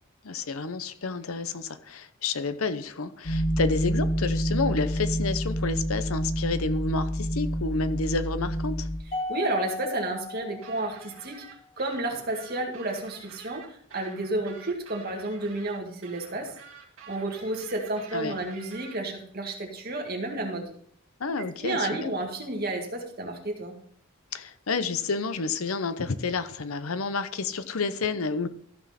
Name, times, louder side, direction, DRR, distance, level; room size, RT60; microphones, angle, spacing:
voice 1, 0.2-8.9 18.1-18.4 21.2-22.1 24.3-28.5, left 4 dB, 80° left, 12 dB, 0.8 m, -30 dB
sound 1, 3.2-9.0, equal, 50° left, 2.3 m, -28 dB
Mallet percussion, 9.1-11.5, left 3 dB, 35° left, 2.6 m, -36 dB
voice 2, 9.3-11.4 11.8-16.5 17.1-20.7 21.6-23.8, right 2 dB, 45° right, 2 dB, 2.0 m, -31 dB
sound 2, 10.6-19.0, right 5 dB, 70° right, 2.0 m, -49 dB
14.0 x 6.2 x 4.3 m, 0.62 s
head